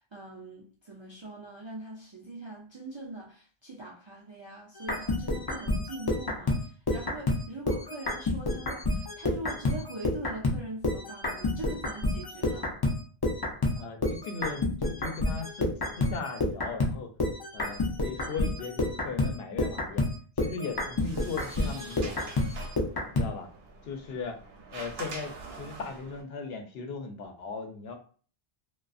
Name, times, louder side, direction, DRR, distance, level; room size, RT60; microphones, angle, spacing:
voice 1, 0.1-12.8, right 2 dB, 50° right, 0.3 m, -42 dB
sound 1, 4.8-10.6 10.8-23.3, left 2 dB, 40° left, 0.3 m, -29 dB
voice 2, 13.8-15.7 16.0-17.1 17.5-20.0 20.4-22.2 23.1-23.5 23.8-24.4 24.7-27.9, left 4 dB, 80° left, 0.8 m, -38 dB
Sliding door, 20.6-26.2, right 3 dB, 75° right, 0.8 m, -44 dB
2.3 x 2.3 x 2.5 m
omnidirectional pair, 1.0 m